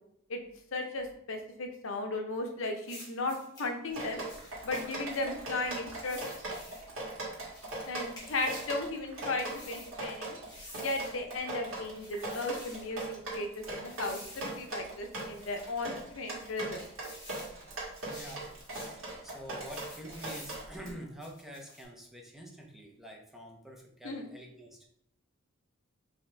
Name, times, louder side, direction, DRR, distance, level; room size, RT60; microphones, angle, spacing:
voice 1, 0.7-4.2 4.6-6.2 7.9-10.4 10.7-16.8 24.0-24.3, left 2 dB, 70° left, 4 dB, 0.7 m, -36 dB
sound 1, 2.8-3.7 4.3-5.2 6.0-6.9 7.5-8.7 9.4-9.9 10.4-11.2 11.9-12.9 13.9-14.7 15.1-15.7 16.3-17.5 17.9-19.0 19.6-20.6 21.2-21.8, left 1 dB, 20° left, 1.6 m, -50 dB
Drip, 3.9-20.9, right 2 dB, 80° right, 1.6 m, -40 dB
voice 2, 17.7-18.5 18.8-24.9, equal, ahead, 0 dB, 0.6 m, -47 dB
5.6 x 2.8 x 3.3 m, 0.72 s
head